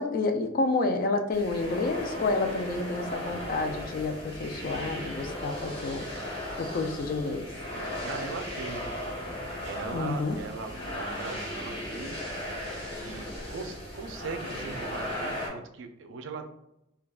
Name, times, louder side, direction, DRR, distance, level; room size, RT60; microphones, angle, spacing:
voice 1, 0.0-7.5 9.9-10.4, left 3 dB, 45° left, 6 dB, 0.3 m, -29 dB
sound 1, 1.3-15.5, left 1 dB, 25° left, 1.0 m, -37 dB
sound 2, 3.3-15.2, equal, 75° left, 1.1 m, -47 dB
voice 2, 7.7-8.8 9.6-12.3 13.0-16.5, right 4 dB, 65° right, 6 dB, 0.4 m, -39 dB
3.3 x 2.3 x 2.3 m, 0.83 s
head